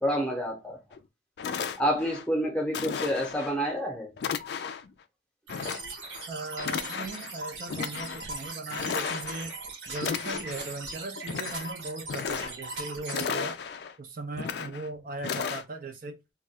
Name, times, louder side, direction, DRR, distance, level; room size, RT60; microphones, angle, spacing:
voice 1, 0.0-0.8 1.8-4.1, equal, 5° left, 0.7 m, -28 dB
sound 1, 0.9-1.0 1.4-2.2 2.7-3.5 4.2-4.9 5.5-6.3 6.6-7.3 7.7-8.2 8.7-9.5 9.9-10.8 11.2-11.7 12.0-12.8 13.1-13.9 14.3-14.9 15.2-15.6, left 6 dB, 65° left, 0.3 m, -34 dB
sound 2, 5.5-13.2, right 3 dB, 80° right, 0.9 m, -40 dB
voice 2, 6.3-9.6 9.9-13.6 14.0-16.2, right 3 dB, 50° right, 0.4 m, -38 dB
2.3 x 2.3 x 4.0 m
head